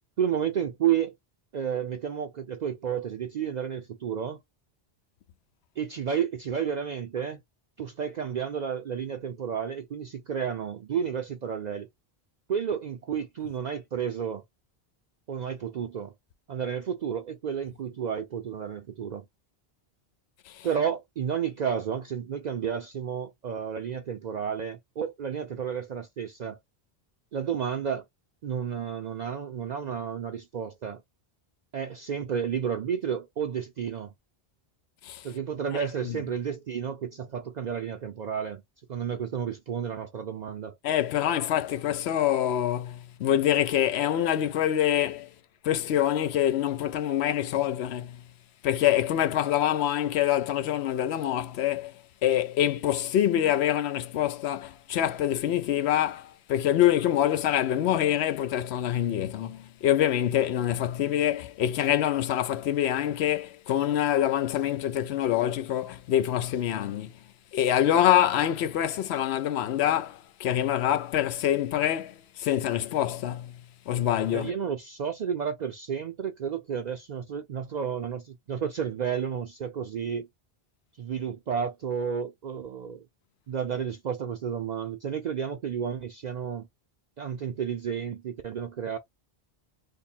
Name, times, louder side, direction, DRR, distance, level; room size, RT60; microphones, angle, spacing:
voice 1, 0.2-1.1 1.5-4.4 5.8-7.4 7.8-11.9 12.5-14.4 15.3-16.1 16.5-19.2 20.6-26.6 27.3-28.0 28.4-31.0 31.7-34.1 35.2-38.6 38.9-40.8 74.3-80.3 81.0-83.0 83.5-86.7 87.2-89.0, right 8 dB, 55° right, 0.5 m, -31 dB
voice 2, 40.8-45.3 45.6-48.2 48.6-51.9 52.2-67.1 67.5-73.6 73.9-74.5, left 11 dB, 85° left, 0.8 m, -25 dB
3.4 x 2.1 x 4.2 m
omnidirectional pair, 1.1 m